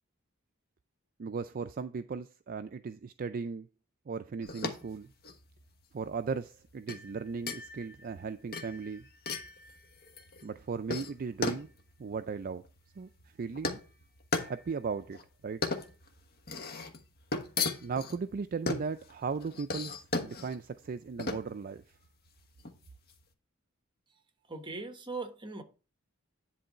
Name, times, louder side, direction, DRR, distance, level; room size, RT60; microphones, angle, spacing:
voice 1, 1.2-3.7 4.1-5.1 5.9-9.1 10.4-11.7 12.0-12.6 12.9-13.8 14.4-15.6 17.8-22.0, right 5 dB, 45° right, 0.4 m, -37 dB
sound 1, 4.4-23.2, left 3 dB, 50° left, 1.2 m, -38 dB
voice 2, 24.1-25.6, right 3 dB, 25° right, 1.3 m, -41 dB
10.5 x 3.8 x 5.5 m
head